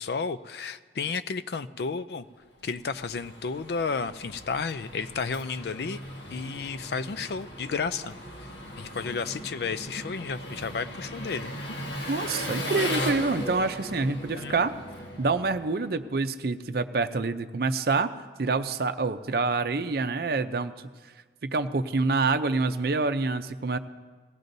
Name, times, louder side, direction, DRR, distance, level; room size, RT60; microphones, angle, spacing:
voice 1, 0.0-2.2 2.6-6.0 6.3-8.1 8.8-11.5 14.3-14.6, left 5 dB, 65° left, 13 dB, 0.4 m, -32 dB
Engine, 2.5-16.1, left 1 dB, 85° left, 1.6 m, -37 dB
voice 2, 12.1-14.7 15.2-18.1 18.4-20.7 21.4-23.8, right 3 dB, 60° right, 10 dB, 0.5 m, -26 dB
18.0 x 16.5 x 2.7 m, 1.4 s
head